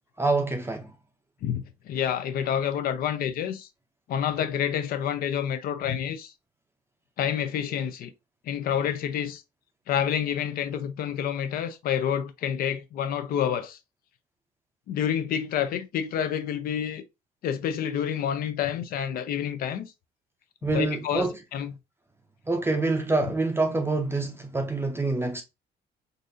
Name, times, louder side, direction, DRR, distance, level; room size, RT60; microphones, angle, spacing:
voice 1, 0.2-0.9 20.6-21.3 22.5-25.4, right 3 dB, 15° right, 0.5 m, -26 dB
voice 2, 1.4-3.7 4.1-6.3 7.2-8.1 8.4-9.4 9.9-13.8 14.9-17.0 17.4-19.9 20.6-21.8, left 9 dB, 60° left, 0.5 m, -28 dB
4.0 x 2.6 x 2.5 m
cardioid pair, 110°, 17 cm